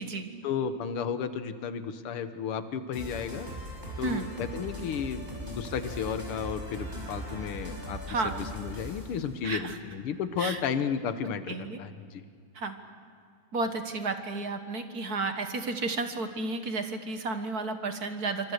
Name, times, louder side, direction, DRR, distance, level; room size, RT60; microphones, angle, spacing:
voice 1, 0.4-3.5 4.0-8.0 8.2-12.2, left 7 dB, 85° left, 10 dB, 2.0 m, -33 dB
sound 1, 2.9-9.2, equal, 20° right, 5.5 m, -39 dB
voice 2, 9.4-9.8 10.4-10.6 11.5-11.8 12.6-12.7 13.5-18.5, right 3 dB, 50° right, 7 dB, 1.8 m, -32 dB
27.5 x 25.0 x 6.6 m, 2.3 s
omnidirectional pair, 2.4 m